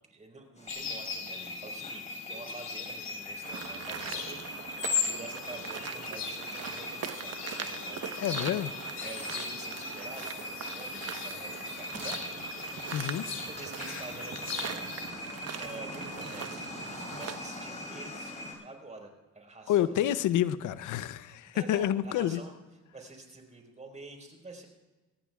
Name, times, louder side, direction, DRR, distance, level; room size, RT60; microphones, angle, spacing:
voice 1, 0.1-8.2 9.0-12.3 13.4-15.2 15.6-20.1 21.5-22.5 22.9-24.7, right 3 dB, 25° right, 2 dB, 4.7 m, -48 dB
sound 1, 0.6-18.5, left 2 dB, 25° left, 5.8 m, -42 dB
sound 2, 0.7-15.1, left 6 dB, 60° left, 3.2 m, -39 dB
sound 3, 3.4-17.4, right 8 dB, 55° right, 1.2 m, -41 dB
voice 2, 8.2-8.7 12.9-13.3 19.7-22.4, left 11 dB, 80° left, 14 dB, 0.7 m, -28 dB
24.0 x 17.0 x 2.4 m, 1.2 s
cardioid pair, 90°, 30 cm